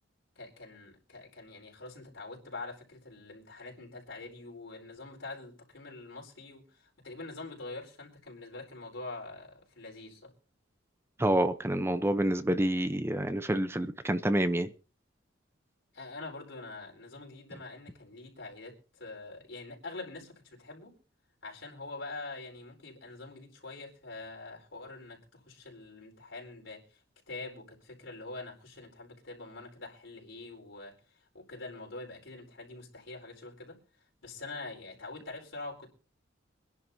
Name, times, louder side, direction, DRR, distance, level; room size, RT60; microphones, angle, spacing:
voice 1, 0.3-10.3 15.9-20.9 21.4-33.8 34.2-35.9, left 3 dB, 75° left, 0 dB, 4.5 m, -45 dB
voice 2, 11.2-14.7, right 1 dB, 15° right, 11 dB, 0.7 m, -28 dB
25.0 x 11.0 x 2.8 m, 0.36 s
head